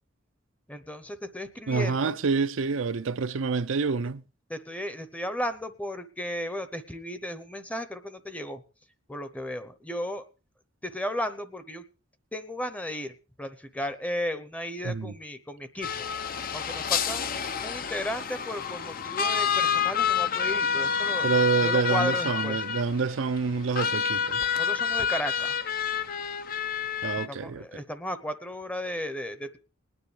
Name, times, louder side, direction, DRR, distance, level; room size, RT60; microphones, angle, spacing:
voice 1, 0.7-2.2 4.5-8.6 9.1-10.2 10.8-11.8 12.3-16.1 16.5-17.3 17.6-21.3 21.6-22.6 24.6-25.6 27.3-29.6, left 1 dB, 5° left, 0.8 m, -34 dB
voice 2, 1.7-4.2 14.8-15.1 21.2-24.4 27.0-27.8, right 5 dB, 70° right, 0.5 m, -27 dB
sound 1, 15.8-27.3, left 7 dB, 45° left, 0.7 m, -28 dB
20.0 x 9.6 x 3.3 m
head